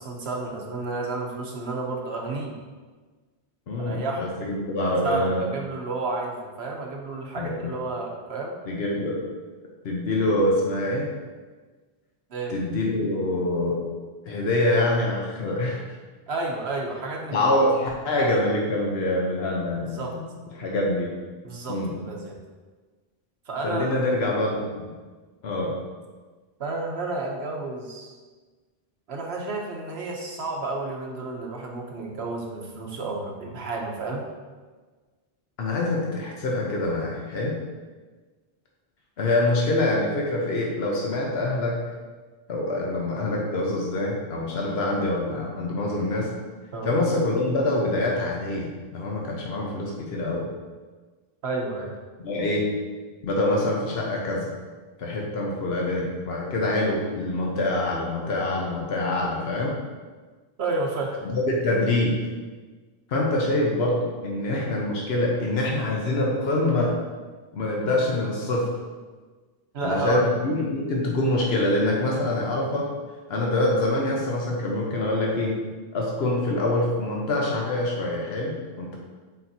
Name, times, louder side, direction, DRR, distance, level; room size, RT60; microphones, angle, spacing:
voice 1, 0.0-2.5 3.8-4.4 5.0-8.5 12.3-12.6 16.3-17.5 19.8-20.2 21.4-22.4 23.5-24.0 26.6-28.2 29.1-34.2 46.7-46.9 51.4-51.9 60.6-61.1 69.7-70.3, right 3 dB, 85° right, 0 dB, 1.2 m, -31 dB
voice 2, 3.7-5.5 7.3-7.7 8.7-9.2 9.8-11.1 12.5-13.8 14.2-15.8 17.3-20.2 20.5-21.1 21.7-21.9 23.6-24.7 25.4-25.8 35.6-37.6 39.2-41.8 42.5-46.3 46.8-50.5 52.2-52.7 53.2-54.5 55.0-59.8 61.2-62.2 63.1-66.9 67.5-68.7 69.8-72.9 73.3-75.5 75.9-79.0, left 1 dB, 85° left, -2 dB, 1.2 m, -25 dB
7.9 x 4.4 x 2.8 m, 1.4 s
omnidirectional pair, 1.0 m